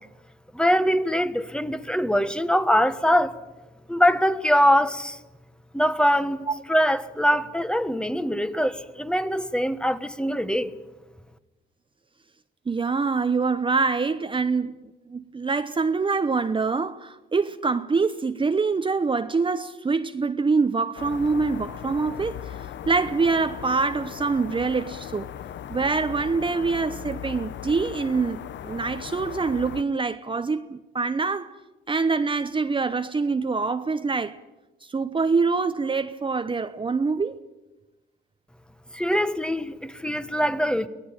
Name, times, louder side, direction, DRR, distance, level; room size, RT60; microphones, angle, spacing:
voice 1, 0.5-3.4 3.9-5.2 5.7-10.7 38.9-40.9, equal, 5° left, 1.3 m, -23 dB
voice 2, 12.7-14.8 15.1-25.3 25.7-31.6 31.9-34.4 34.8-37.4, right 4 dB, 25° right, 0.9 m, -25 dB
sound 1, 21.0-29.8, left 10 dB, 65° left, 0.9 m, -38 dB
24.0 x 18.0 x 9.0 m
cardioid pair, 90°, 20 cm